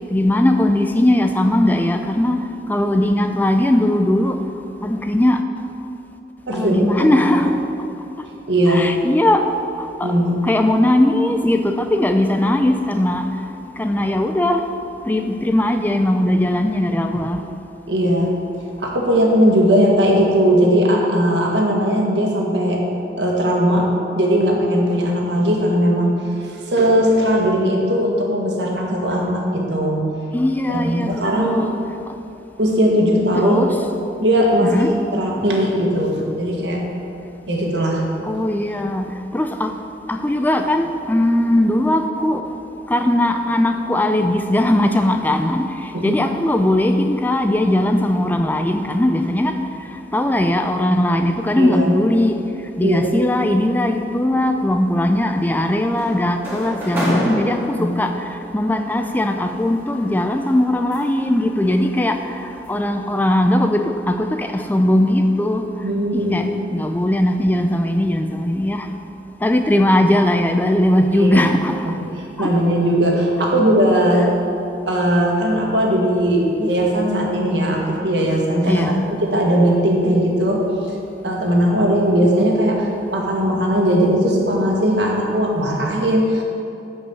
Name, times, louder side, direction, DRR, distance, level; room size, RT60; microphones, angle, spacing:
voice 1, 0.1-4.4 4.8-5.4 6.5-7.6 8.7-9.5 9.8-10.1 10.4-13.3 13.8-14.7 15.0-17.4 30.3-31.8 32.1-32.2 33.4-33.7 34.6-35.0 38.2-39.7 40.1-42.4 42.9-49.7 50.1-52.4 52.8-65.7 66.1-68.9 69.4-71.9 72.4-72.5 78.7-79.1, left 1 dB, 10° left, 6 dB, 0.3 m, -19 dB
voice 2, 6.5-7.2 8.5-8.9 10.0-10.4 17.9-22.8 23.2-30.1 30.7-31.6 32.6-33.6 34.2-34.8 35.1-36.9 37.5-38.1 45.9-46.1 51.5-51.9 52.8-53.1 57.8-57.9 65.8-66.5 71.2-71.5 71.9-72.0 72.4-80.9 81.2-86.4, equal, 75° right, -1 dB, 1.6 m, -18 dB
sound 1, 55.3-58.2 59.4-61.3 61.7-62.0 62.4-62.7, equal, 10° right, 1.9 m, -28 dB
8.5 x 5.4 x 7.0 m, 2.8 s
head